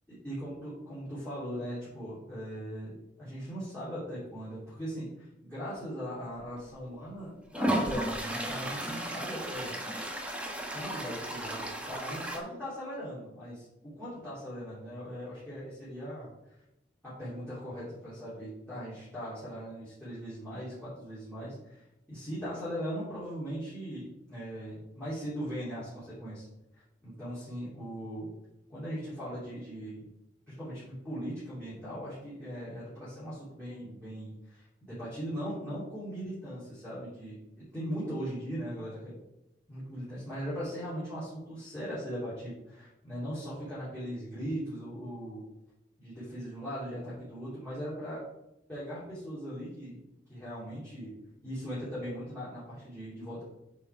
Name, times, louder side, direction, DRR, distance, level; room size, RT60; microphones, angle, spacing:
voice 1, 0.1-2.9 3.2-9.8 10.7-16.3 17.0-26.5 27.0-28.3 28.7-30.0 30.5-39.1 39.7-45.4 46.0-48.2 48.7-50.0 50.3-51.1 51.4-53.4, equal, 10° left, -13 dB, 2.9 m, -39 dB
Toilet flush, 6.6-6.7 7.5-12.4, right 1 dB, 5° right, 0.9 m, -34 dB
8.1 x 4.2 x 4.5 m, 0.91 s
head